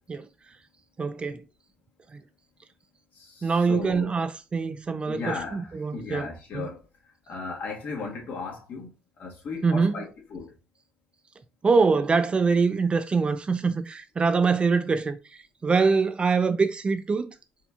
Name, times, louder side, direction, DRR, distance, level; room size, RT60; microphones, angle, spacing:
voice 1, 1.0-1.4 2.1-2.2 3.4-6.3 6.5-6.7 9.6-10.0 11.6-15.2 15.6-17.4, right 4 dB, 30° right, 0.4 m, -24 dB
voice 2, 3.1-4.1 5.0-6.9 7.3-10.5, left 4 dB, 60° left, 1.3 m, -36 dB
4.3 x 2.3 x 2.7 m
cardioid pair, 95°, 4 cm